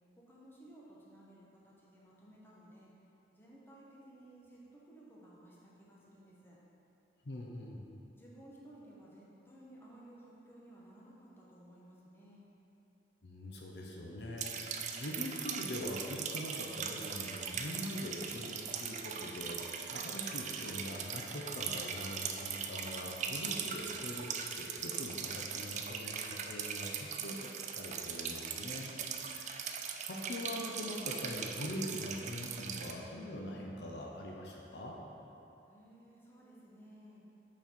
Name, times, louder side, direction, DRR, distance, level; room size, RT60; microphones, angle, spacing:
voice 1, 0.2-2.9 3.3-6.6 8.1-12.5 35.7-37.2, right 1 dB, 15° left, -6 dB, 0.9 m, -57 dB
voice 2, 7.2-7.8 13.2-28.9 29.3-35.0, left 1 dB, 65° left, -1 dB, 0.6 m, -43 dB
sound 1, 14.4-32.9, right 7 dB, 40° right, 0.4 m, -40 dB
5.8 x 4.3 x 4.3 m, 3.0 s
head